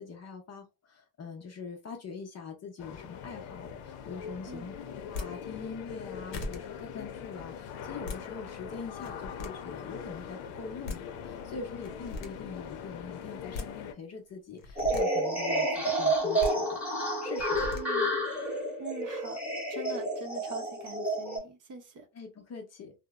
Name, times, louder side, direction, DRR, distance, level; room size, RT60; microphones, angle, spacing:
voice 1, 0.0-4.8 5.1-16.8 17.2-17.7 22.1-22.9, left 4 dB, 35° left, 2 dB, 0.6 m, -43 dB
sound 1, 2.8-13.9, left 8 dB, 80° left, 0.6 m, -42 dB
sound 2, 5.0-5.3 6.0-6.1 6.3-6.6 7.8-8.2 8.9-9.5 10.6-10.7 10.8-11.0 11.8-12.3 13.3-13.7 14.6-15.0 16.2-16.5 17.4-17.8, left 3 dB, 60° left, 0.9 m, -38 dB
sound 3, 14.8-21.4, right 1 dB, 5° right, 0.9 m, -30 dB
voice 2, 17.7-18.1 18.8-19.4 19.7-22.1, right 3 dB, 40° right, 4 dB, 0.7 m, -43 dB
2.7 x 2.0 x 2.3 m, 0.27 s
cardioid pair, 110°, 49 cm